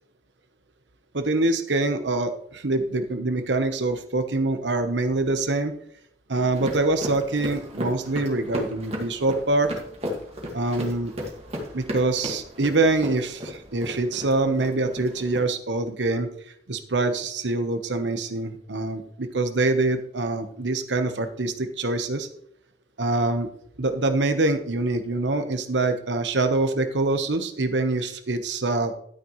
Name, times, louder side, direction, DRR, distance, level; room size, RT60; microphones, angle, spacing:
voice 1, 1.1-5.7 6.3-9.7 10.5-11.1 11.7-16.3 16.7-22.3 23.0-23.5 23.8-28.9, right 2 dB, 90° right, 8 dB, 1.1 m, -25 dB
sound 1, 6.3-15.4, equal, 35° right, 1.9 m, -35 dB
11.5 x 9.6 x 3.2 m, 0.67 s
head